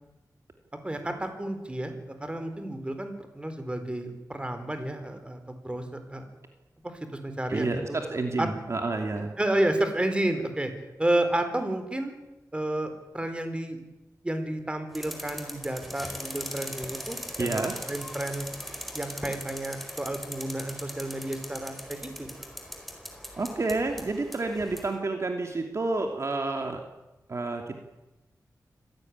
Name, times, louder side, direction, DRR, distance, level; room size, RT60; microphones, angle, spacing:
voice 1, 0.8-6.3 6.8-8.0 8.4-8.5 9.4-10.7 11.0-12.1 12.5-13.8 14.2-18.5 18.9-22.3, right 1 dB, 15° right, 8 dB, 4.3 m, -31 dB
voice 2, 7.5-9.3 17.4-17.7 23.4-26.8 27.3-27.8, right 3 dB, 45° right, 4 dB, 2.9 m, -29 dB
sound 1, 14.9-24.9, equal, ahead, 4.6 m, -40 dB
26.0 x 17.0 x 9.7 m, 1.0 s
wide cardioid pair, 100°, 7 cm